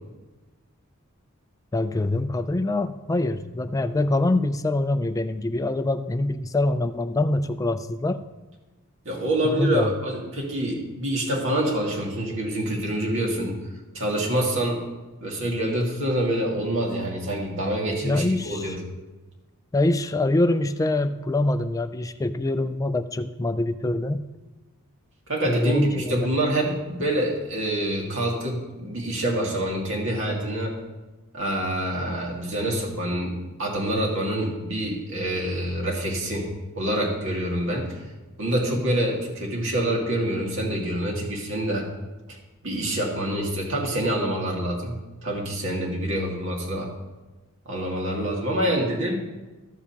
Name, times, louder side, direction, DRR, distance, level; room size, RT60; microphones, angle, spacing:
voice 1, 1.7-8.2 9.4-9.9 18.0-18.8 19.7-24.2 25.5-26.3 38.8-38.9, left 2 dB, 15° left, 10 dB, 0.3 m, -24 dB
voice 2, 9.1-13.6 13.9-14.8 15.2-18.8 25.3-30.8 31.3-36.5 36.8-38.0 38.4-41.9 42.6-44.9 45.2-46.9 47.7-49.2, right 1 dB, 60° right, -1 dB, 2.0 m, -26 dB
14.0 x 7.1 x 2.9 m, 1.2 s
head